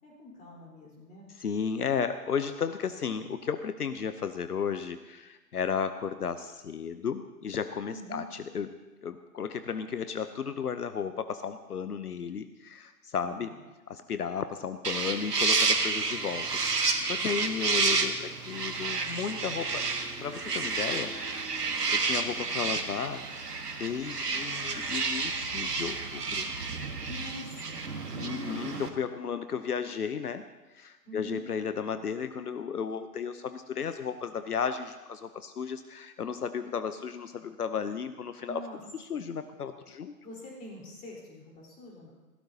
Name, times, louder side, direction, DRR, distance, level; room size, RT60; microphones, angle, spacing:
voice 1, 0.0-1.3 7.9-8.3 13.2-13.5 27.1-27.8 31.0-31.4 38.4-38.8 39.1-39.2 40.2-42.1, equal, 15° left, -3 dB, 4.2 m, -45 dB
voice 2, 1.4-8.7 9.0-13.5 13.9-19.8 20.2-21.2 21.6-26.5 28.1-30.4 30.7-38.6 38.9-40.1, left 6 dB, 75° left, 11 dB, 0.9 m, -34 dB
sound 1, 14.8-28.9, right 4 dB, 80° right, 1.6 m, -30 dB
20.5 x 16.5 x 2.9 m, 1.2 s
figure-of-eight pair, 125°, 46 cm